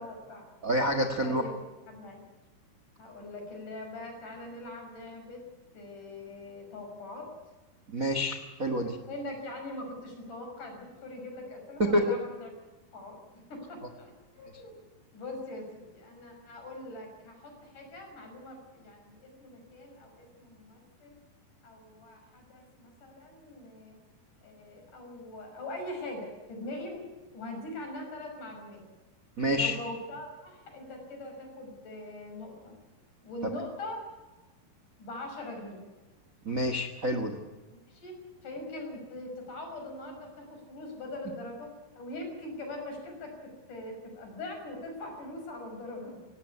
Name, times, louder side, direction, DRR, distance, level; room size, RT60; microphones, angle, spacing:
voice 1, 0.0-0.5 1.2-1.6 1.9-2.2 3.0-5.4 5.7-7.3 9.1-12.5 12.9-14.8 15.1-21.2 21.6-24.0 24.4-27.0 27.3-28.8 29.5-32.8 33.2-34.0 35.0-35.8 37.7-38.2 38.4-46.2, left 1 dB, 50° left, 3 dB, 7.4 m, -42 dB
voice 2, 0.6-1.4 7.9-8.9 11.8-12.0 29.4-29.8 36.4-37.4, equal, 70° right, 7 dB, 0.7 m, -27 dB
18.5 x 18.0 x 9.7 m, 1.2 s
omnidirectional pair, 4.6 m